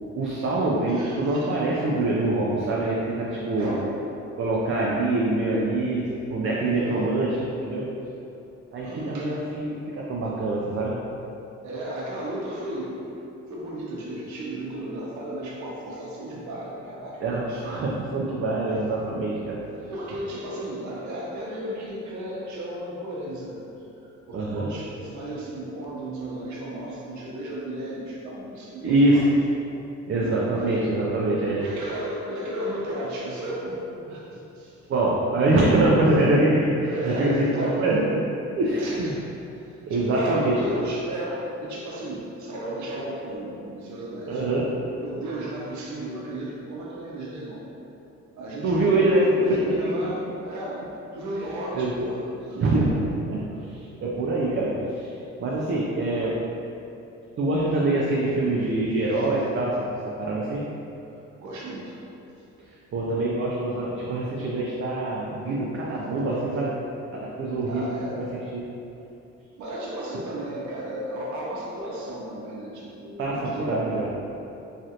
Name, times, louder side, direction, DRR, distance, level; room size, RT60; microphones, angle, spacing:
voice 1, 0.1-3.7 4.4-8.0 8.7-11.0 17.2-19.6 24.3-24.7 28.8-29.3 30.1-31.6 34.9-38.1 38.6-39.1 39.9-40.8 44.3-44.7 48.6-49.9 51.7-51.9 52.6-52.9 53.3-55.1 55.4-56.4 57.4-59.9 60.2-60.6 62.9-66.7 67.1-67.9 68.2-68.3 68.5-68.6 73.2-74.1, right 2 dB, 45° right, -5 dB, 0.4 m, -24 dB
voice 2, 0.9-1.5 3.5-4.0 6.6-7.3 8.8-9.6 11.6-13.0 13.5-17.8 19.9-23.6 24.3-29.3 30.1-30.8 31.5-34.8 36.8-37.9 38.8-39.3 39.6-44.5 45.0-47.6 48.3-52.9 59.1-59.3 61.4-62.0 67.7-68.2 69.5-74.1, right 1 dB, 70° right, -4 dB, 0.8 m, -34 dB
3.1 x 2.4 x 2.8 m, 2.8 s
cardioid pair, 90°, 30 cm